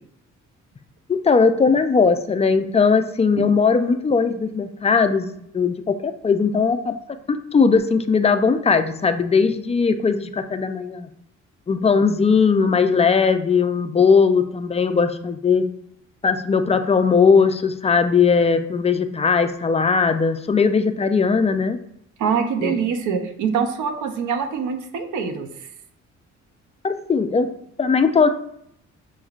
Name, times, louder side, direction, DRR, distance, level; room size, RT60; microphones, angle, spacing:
voice 1, 1.1-5.3 5.5-6.9 7.3-11.1 11.7-15.6 16.2-21.8 22.6-22.7 26.8-27.5 27.8-28.3, left 5 dB, 20° left, 8 dB, 0.4 m, -19 dB
voice 2, 22.2-25.7, right 6 dB, 75° right, 6 dB, 0.7 m, -24 dB
6.1 x 3.1 x 2.4 m, 0.73 s
cardioid pair, 90°, 30 cm